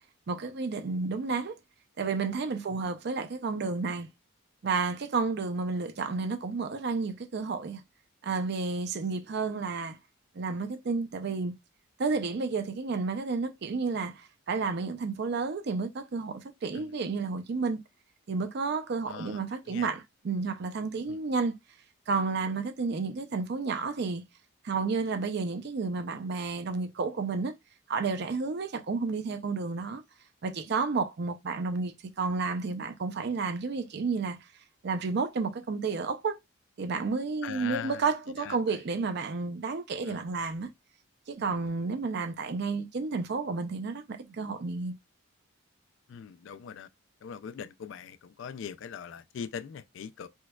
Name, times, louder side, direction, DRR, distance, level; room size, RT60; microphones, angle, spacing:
voice 1, 0.3-1.5 2.0-4.1 4.6-7.8 8.2-10.0 10.3-11.5 12.0-17.8 18.3-21.5 22.1-24.2 24.6-27.5 27.9-30.0 30.4-34.4 34.8-36.4 36.8-40.7 41.3-44.9, right 4 dB, 50° right, 0.4 m, -31 dB
voice 2, 19.1-19.4 19.7-19.9 21.0-21.2 37.4-38.1 38.4-38.8 40.0-40.3 46.1-46.9 47.2-50.3, left 7 dB, 60° left, 0.3 m, -41 dB
4.4 x 2.2 x 2.2 m
head